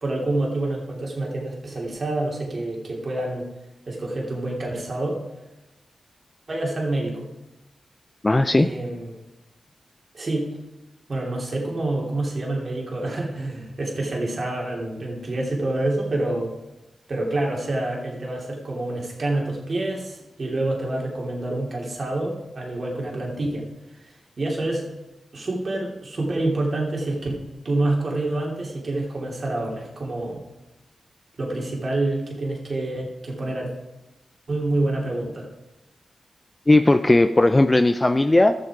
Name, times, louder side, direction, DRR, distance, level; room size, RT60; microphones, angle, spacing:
voice 1, 0.0-3.5 3.9-5.2 6.5-7.3 8.6-9.1 10.1-10.6 11.1-16.5 17.1-23.6 24.4-24.9 25.3-30.4 31.4-33.7 34.5-35.5, right 2 dB, 55° right, -1 dB, 3.0 m, -27 dB
voice 2, 8.2-8.7 36.7-38.6, left 2 dB, 25° left, 9 dB, 0.6 m, -17 dB
12.0 x 7.8 x 4.9 m, 0.96 s
supercardioid pair, 40°, 0 cm